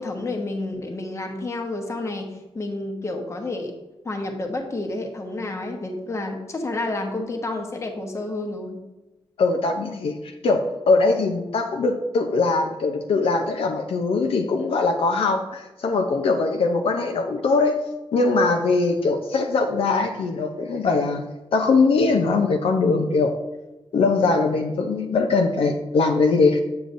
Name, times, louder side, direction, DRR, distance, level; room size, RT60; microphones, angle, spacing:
voice 1, 0.0-2.3 2.5-3.7 4.0-8.8, left 2 dB, 30° left, 3 dB, 1.0 m, -30 dB
voice 2, 9.4-17.8 18.1-21.2 21.5-23.3 23.9-26.6, left 3 dB, 70° left, 3 dB, 0.6 m, -21 dB
7.8 x 6.7 x 2.6 m, 1.1 s
wide cardioid pair, 130°, 10 cm